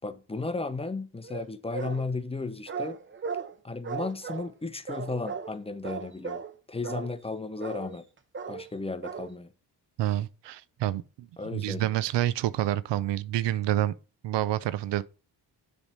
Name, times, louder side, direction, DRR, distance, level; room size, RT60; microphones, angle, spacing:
voice 1, 0.0-3.0 3.6-6.4 6.7-8.0 8.5-9.5 11.4-11.9, left 3 dB, 15° left, 0.7 m, -34 dB
sound 1, 1.2-2.1 2.7-3.6 3.8-4.5 4.9-5.6 5.8-6.6 6.8-7.2 7.6-8.0 8.3-8.7 9.0-9.3, right 5 dB, 25° right, 0.8 m, -37 dB
voice 2, 10.0-13.9 14.2-15.0, right 13 dB, 75° right, 0.5 m, -28 dB
7.0 x 3.5 x 5.3 m
cardioid pair, 75°, 43 cm